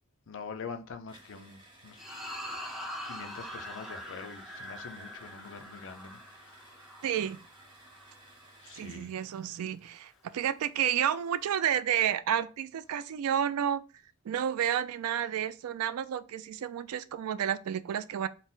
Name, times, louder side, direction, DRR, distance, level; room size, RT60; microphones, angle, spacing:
voice 1, 0.3-2.0 3.0-6.6 8.6-9.2, left 5 dB, 60° left, 0.5 m, -44 dB
sound 1, 1.1-9.1, right 1 dB, 20° right, 0.8 m, -57 dB
sound 2, 2.0-8.5, equal, ahead, 0.5 m, -43 dB
voice 2, 7.0-7.4 8.8-13.8 14.2-18.3, right 9 dB, 75° right, 0.3 m, -31 dB
4.0 x 2.1 x 3.8 m
head